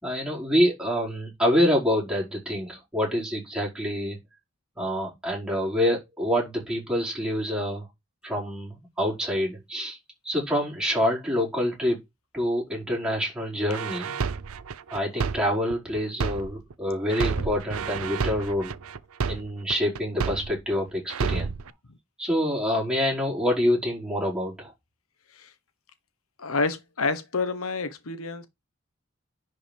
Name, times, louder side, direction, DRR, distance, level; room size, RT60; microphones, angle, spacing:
voice 1, 0.0-4.2 4.7-7.9 8.2-10.0 10.2-12.0 12.3-14.1 14.9-18.7 19.3-21.5 22.2-24.7, equal, 5° right, 5.0 m, -26 dB
sound 1, 13.7-16.7 17.1-20.7 21.1-21.7, right 5 dB, 85° right, 0.6 m, -30 dB
voice 2, 26.4-28.5, left 3 dB, 85° left, 1.1 m, -29 dB
10.5 x 5.1 x 3.5 m
head